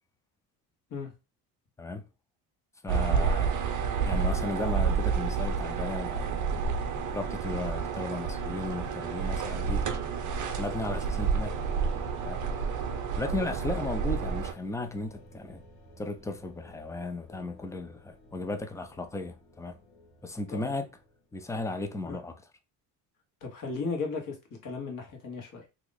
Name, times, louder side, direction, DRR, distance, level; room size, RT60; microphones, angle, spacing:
voice 1, 2.8-3.6 4.0-6.6 7.1-9.9 10.6-11.6 12.2-12.4 13.2-15.6 16.0-19.8 20.2-20.9 21.3-22.4, left 2 dB, 5° left, 0.5 m, -35 dB
sound 1, 2.9-14.5, right 5 dB, 45° right, 0.7 m, -30 dB
sound 2, 11.5-21.3, left 1 dB, 80° left, 1.6 m, -52 dB
voice 2, 23.4-24.4 24.6-25.6, left 4 dB, 45° left, 1.5 m, -35 dB
2.9 x 2.5 x 4.0 m
supercardioid pair, 90°, 42 cm